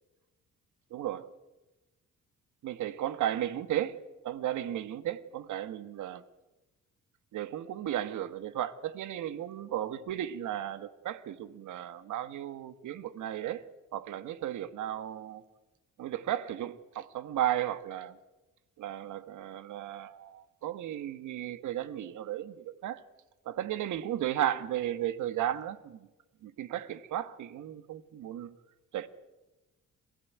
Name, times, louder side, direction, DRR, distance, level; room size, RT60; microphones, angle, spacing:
voice 1, 0.9-1.3 2.6-3.9 4.2-6.2 7.3-13.6 13.9-15.4 16.0-18.2 18.8-23.0 23.5-26.1 26.4-28.5 28.9-29.1, right 12 dB, 80° right, 13 dB, 1.6 m, -34 dB
27.0 x 16.0 x 9.5 m, 1.1 s
cardioid pair, 90°, 30 cm